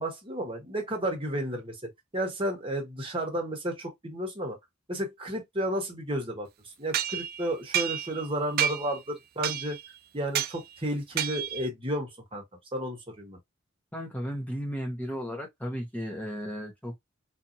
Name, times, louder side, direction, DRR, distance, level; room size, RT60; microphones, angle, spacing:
voice 1, 0.0-1.7 2.1-4.6 4.9-6.5 6.8-9.8 10.1-12.4 12.7-13.4, right 1 dB, 25° right, 1.3 m, -32 dB
sound 1, 6.9-8.3 8.6-9.0 9.4-9.9 10.3-10.6 11.2-11.7, right 11 dB, 50° right, 0.4 m, -30 dB
voice 2, 13.9-17.0, equal, 10° left, 1.0 m, -34 dB
4.1 x 2.7 x 2.6 m
head